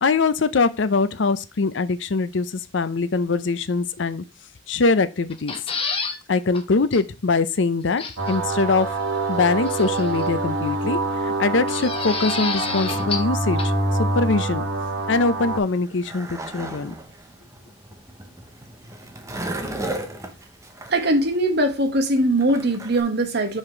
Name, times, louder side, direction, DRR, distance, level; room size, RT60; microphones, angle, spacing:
voice 1, 0.0-4.2 4.7-5.5 6.3-8.9 9.3-13.7 14.0-14.6 15.1-16.9, left 4 dB, 70° left, 0.6 m, -22 dB
sound 1, 5.3-6.2 6.5-6.6 6.9-7.0 8.0-8.4 9.7-10.3 11.7-13.3 13.6-13.7, left 4 dB, 30° left, 1.1 m, -29 dB
sound 2, 8.2-15.6, right 2 dB, 85° right, 1.4 m, -25 dB
Skateboard, 15.5-23.0, right 1 dB, 15° right, 0.9 m, -35 dB
voice 2, 20.9-23.6, right 1 dB, 60° right, 1.3 m, -21 dB
5.7 x 5.0 x 4.4 m
head